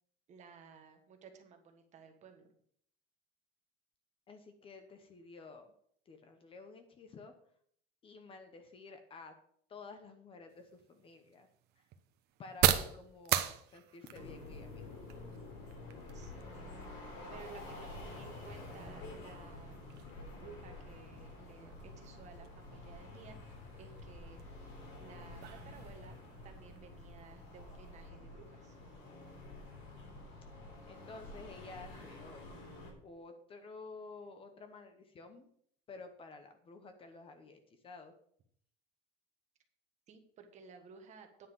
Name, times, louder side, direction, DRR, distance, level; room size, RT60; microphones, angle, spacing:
voice 1, 0.3-2.5 16.1-19.9 20.4-24.4 24.7-26.2 26.4-28.8 40.1-41.5, right 5 dB, 35° right, 5 dB, 1.4 m, -56 dB
voice 2, 4.3-5.7 6.1-7.3 8.0-9.3 9.7-11.5 11.8-11.9 12.4-15.0 30.9-32.4 33.0-35.5 35.9-38.1, left 3 dB, 25° left, 8 dB, 0.8 m, -52 dB
sound 1, 10.5-28.1, right 11 dB, 55° right, 0.8 m, -41 dB
sound 2, 14.1-32.9, left 2 dB, 65° left, 3.7 m, -49 dB
9.6 x 5.7 x 6.0 m, 0.65 s
cardioid pair, 180°, 20 cm